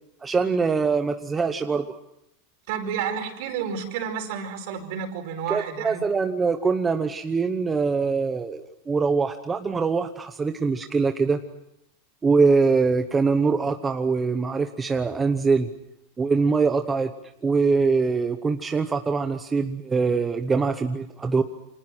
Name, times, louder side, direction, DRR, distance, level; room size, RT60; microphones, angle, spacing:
voice 1, 0.2-1.8 5.5-11.4 12.2-15.7 16.2-17.1 17.4-21.4, right 4 dB, 10° right, 6 dB, 0.9 m, -23 dB
voice 2, 2.7-6.0, right 7 dB, 50° right, 6 dB, 4.9 m, -30 dB
29.0 x 27.0 x 6.2 m, 0.80 s
supercardioid pair, 175°, 0 cm